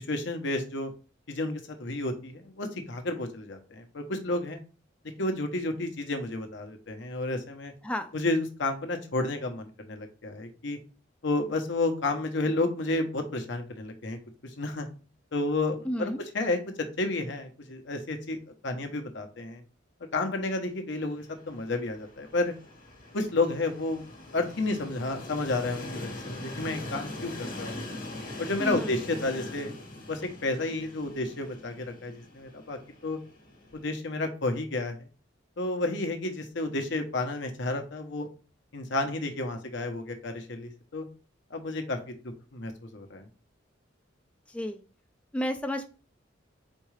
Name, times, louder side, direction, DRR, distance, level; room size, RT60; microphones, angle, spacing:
voice 1, 0.1-0.9 1.3-4.6 5.2-7.7 8.1-10.8 11.2-14.2 14.6-14.9 15.3-18.4 18.6-19.6 20.1-22.5 23.1-24.0 24.3-27.8 28.4-29.8 30.1-33.2 33.7-34.9 35.6-38.3 38.7-41.1 41.5-42.0 42.5-43.2, left 2 dB, 65° left, 5 dB, 0.9 m, -31 dB
voice 2, 15.8-16.2 28.6-28.9 44.5-44.8 45.3-45.9, equal, 5° left, 6 dB, 0.3 m, -31 dB
Train, 21.0-33.9, left 2 dB, 50° left, 1.2 m, -42 dB
4.5 x 3.6 x 3.2 m, 0.35 s
head